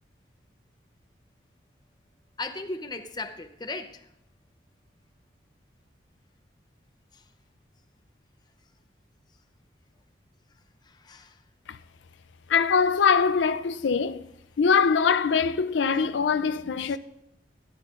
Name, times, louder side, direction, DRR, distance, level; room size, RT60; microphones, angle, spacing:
voice 1, 2.4-4.0 10.9-11.4, left 2 dB, 20° left, 0.6 m, -36 dB
voice 2, 12.5-14.3 14.6-17.0, left 6 dB, 75° left, 0.4 m, -23 dB
17.0 x 11.0 x 2.5 m
head